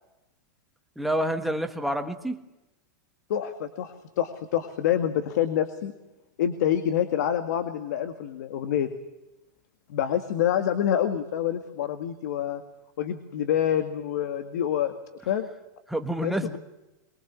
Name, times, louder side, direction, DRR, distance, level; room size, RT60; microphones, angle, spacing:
voice 1, 1.0-2.4 15.9-16.6, right 1 dB, ahead, 6 dB, 1.4 m, -28 dB
voice 2, 3.3-5.9 6.4-8.9 9.9-12.6 13.0-14.9 15.3-15.5 16.2-16.6, left 10 dB, 60° left, 9 dB, 2.0 m, -27 dB
23.5 x 22.5 x 8.4 m, 0.96 s
supercardioid pair, 165°, 10 cm